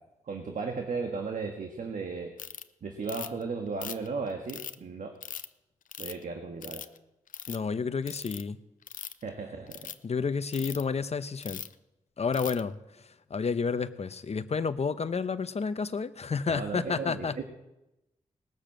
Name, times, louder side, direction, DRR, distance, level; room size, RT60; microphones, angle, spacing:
voice 1, 0.3-2.3 2.8-5.2 6.0-6.8 9.2-9.9 16.5-17.4, right 4 dB, 70° right, 3 dB, 1.6 m, -35 dB
Ratchet pawl, 2.4-2.6 3.1-3.4 3.8-4.8 5.2-5.5 5.9-6.2 6.6-7.0 7.3-7.6 8.1-8.4 8.8-9.2 9.7-9.9 10.5-10.8 11.4-11.7 12.3-12.6, left 8 dB, 75° left, 0.6 m, -40 dB
voice 2, 7.5-8.6 10.0-11.6 12.2-12.8 13.3-17.4, left 5 dB, 50° left, 12 dB, 0.9 m, -30 dB
19.5 x 6.8 x 7.6 m, 0.93 s
cardioid pair, 50°, 14 cm